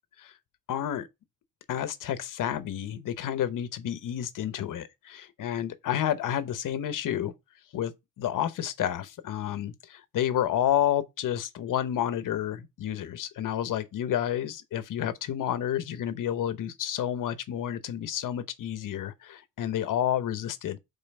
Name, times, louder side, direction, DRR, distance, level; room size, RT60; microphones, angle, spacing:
voice 1, 0.7-1.1 1.7-7.3 7.7-20.8, left 10 dB, 65° left, 0.9 m, -30 dB
5.5 x 3.9 x 5.3 m
cardioid pair, 170°, 34 cm